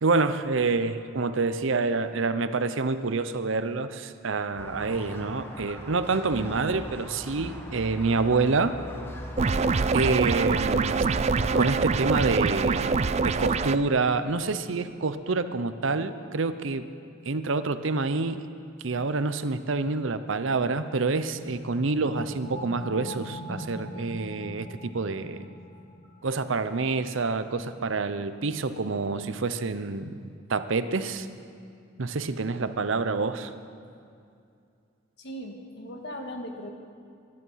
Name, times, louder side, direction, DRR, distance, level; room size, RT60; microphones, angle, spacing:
voice 1, 0.0-8.7 9.9-11.1 11.5-16.8 17.2-18.4 18.8-25.4 26.2-31.3 32.0-33.5, right 3 dB, 70° right, 11 dB, 0.7 m, -27 dB
Squeak, 4.6-11.7, equal, 10° left, 1.3 m, -40 dB
sound 1, 9.4-13.8, right 4 dB, 30° right, 0.4 m, -24 dB
sound 2, 21.3-26.6, left 1 dB, 35° left, 2.8 m, -42 dB
voice 2, 35.2-36.7, equal, 55° left, 2 dB, 1.8 m, -38 dB
23.5 x 11.0 x 5.7 m, 2.4 s
head